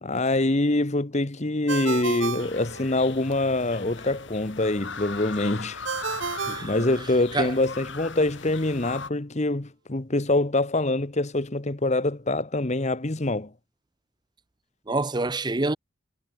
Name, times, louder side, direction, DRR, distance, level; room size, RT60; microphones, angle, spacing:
voice 1, 0.0-5.8 6.6-13.5, left 2 dB, 35° left, 1.1 m, -25 dB
Ringtone, 1.7-3.4 5.9-7.5, right 5 dB, 60° right, 1.3 m, -33 dB
sound 1, 2.4-9.1, left 4 dB, 60° left, 4.1 m, -39 dB
voice 2, 14.9-15.8, right 2 dB, 20° right, 0.7 m, -26 dB
head